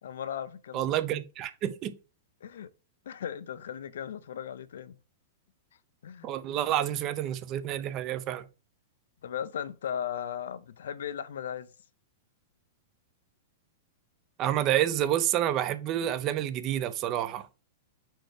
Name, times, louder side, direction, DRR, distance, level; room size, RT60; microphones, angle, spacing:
voice 1, 0.0-0.9 2.4-2.7 3.1-5.0 6.0-6.3 9.2-11.7, left 9 dB, 85° left, 0.6 m, -37 dB
voice 2, 0.7-2.0 6.2-8.5 14.4-17.5, right 12 dB, 25° right, 0.5 m, -29 dB
4.5 x 4.5 x 4.7 m
supercardioid pair, 165°, 0 cm